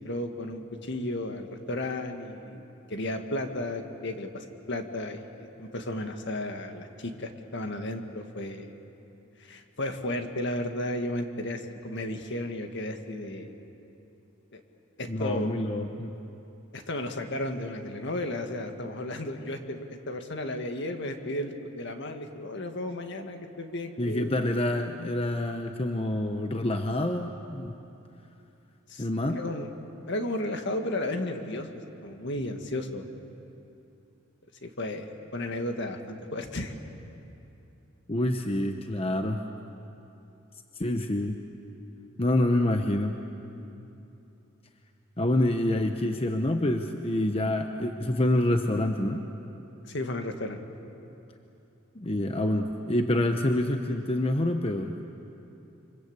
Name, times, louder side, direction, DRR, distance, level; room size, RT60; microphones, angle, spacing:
voice 1, 0.0-2.6 2.9-8.7 9.4-13.5 14.5-14.6 15.0-15.5 16.7-24.3 28.9-29.1 29.3-29.7 30.1-31.7 32.0-33.1 34.6-36.8 49.9-50.6, left 1 dB, 55° left, 5 dB, 1.9 m, -34 dB
voice 2, 15.1-16.2 24.0-27.8 29.0-29.4 38.1-39.4 40.8-41.4 42.2-43.2 45.2-49.2 51.9-54.9, left 1 dB, 30° left, 5 dB, 0.9 m, -27 dB
27.5 x 25.0 x 8.1 m, 2.9 s
head